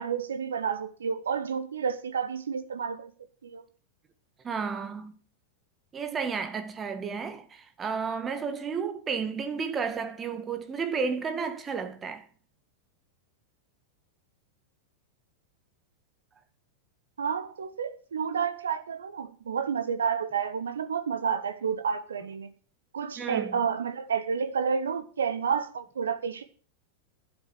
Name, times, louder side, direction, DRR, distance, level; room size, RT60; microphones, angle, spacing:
voice 1, 0.0-3.1 3.4-3.6 17.2-22.5 22.9-26.4, right 6 dB, 70° right, 1.1 m, -30 dB
voice 2, 4.4-5.2 5.9-12.3 23.2-23.6, right 5 dB, 20° right, 1.8 m, -32 dB
11.5 x 7.9 x 6.5 m
figure-of-eight pair, 90°, 0 cm